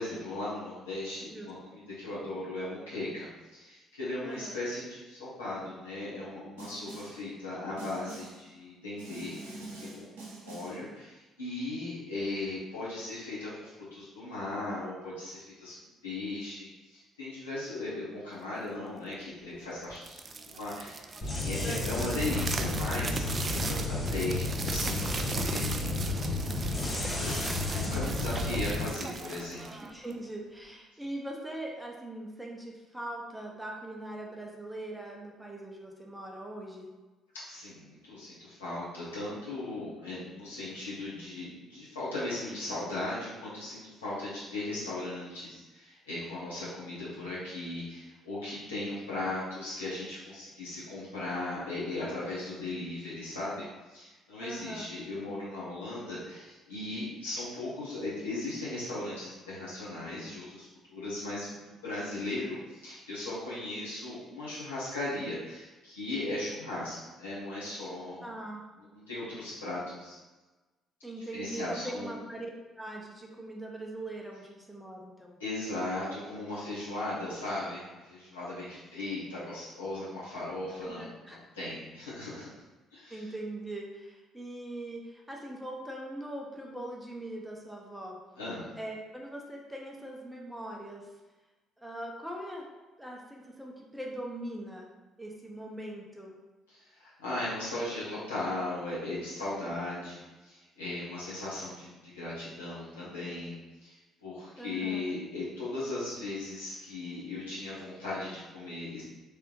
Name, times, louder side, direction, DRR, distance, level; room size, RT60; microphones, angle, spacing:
voice 1, 0.0-3.3 3.5-10.1 10.4-15.7 16.0-29.6 37.5-68.2 68.9-70.2 71.3-72.1 75.4-82.5 82.9-83.2 88.4-88.7 96.7-103.6 103.8-109.0, left 2 dB, 80° left, -9 dB, 1.2 m, -37 dB
voice 2, 4.2-4.6 21.6-22.2 29.7-36.9 54.4-54.9 68.2-68.6 71.0-72.5 72.8-75.4 80.8-81.4 83.1-88.2 88.8-91.1 91.8-92.7 93.0-94.9 95.2-96.4 104.6-105.1, right 1 dB, 5° right, 0 dB, 0.7 m, -41 dB
Snare drum, 6.6-7.3 7.8-8.5 9.0-10.9, right 2 dB, 75° right, 0.9 m, -45 dB
sound 1, 19.9-30.3, right 4 dB, 35° right, 0.3 m, -38 dB
sound 2, 21.2-28.8, left 2 dB, 35° left, 0.9 m, -32 dB
3.3 x 3.3 x 3.0 m, 1.2 s
figure-of-eight pair, 50°, 0 cm